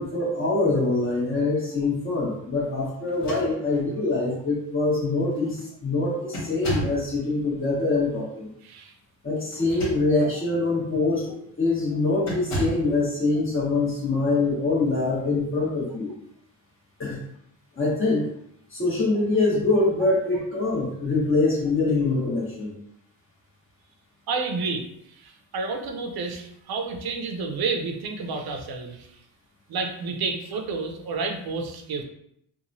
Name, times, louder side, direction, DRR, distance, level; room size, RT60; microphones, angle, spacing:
voice 1, 0.0-8.5 9.2-16.1 17.0-17.2 17.8-18.3 18.7-22.7, left 3 dB, 30° left, -5 dB, 1.2 m, -24 dB
sound 1, 3.1-4.0 4.8-4.9 5.3-5.7 6.3-7.1 9.5-10.4 10.9-11.1 12.2-12.9, right 1 dB, 70° left, 1.4 m, -33 dB
voice 2, 8.6-8.9 20.0-20.1 24.3-29.2 29.7-32.0, right 4 dB, 55° right, 4 dB, 0.6 m, -30 dB
2.8 x 2.3 x 2.6 m, 0.73 s
cardioid pair, 105°, 44 cm